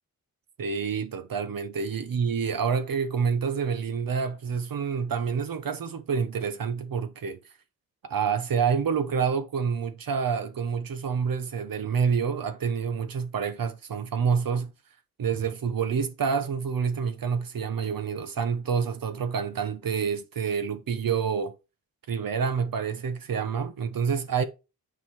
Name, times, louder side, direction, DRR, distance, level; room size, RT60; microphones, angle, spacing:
voice 1, 0.6-7.4 8.0-14.7 15.2-21.5 22.1-24.4, right 6 dB, 70° right, 1.0 m, -28 dB
9.4 x 3.7 x 4.5 m
cardioid pair, 75°, 36 cm